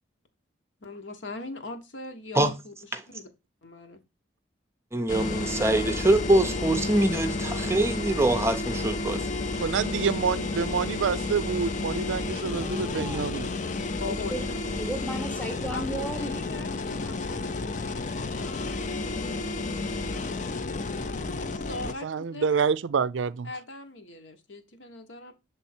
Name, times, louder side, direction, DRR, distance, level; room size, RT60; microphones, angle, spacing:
voice 1, 0.8-2.7 3.1-3.3 3.6-4.0 14.0-14.6 15.7-19.5 21.4-22.5 23.4-25.3, left 3 dB, 75° left, 1.1 m, -40 dB
voice 2, 4.9-9.4, right 1 dB, 15° right, 0.5 m, -24 dB
sound 1, 5.1-21.9, left 3 dB, 40° left, 0.4 m, -31 dB
voice 3, 9.6-13.5 22.0-23.5, right 6 dB, 80° right, 0.4 m, -27 dB
voice 4, 12.5-13.4 14.3-16.5, right 1 dB, 5° left, 0.9 m, -35 dB
7.2 x 3.5 x 4.3 m
head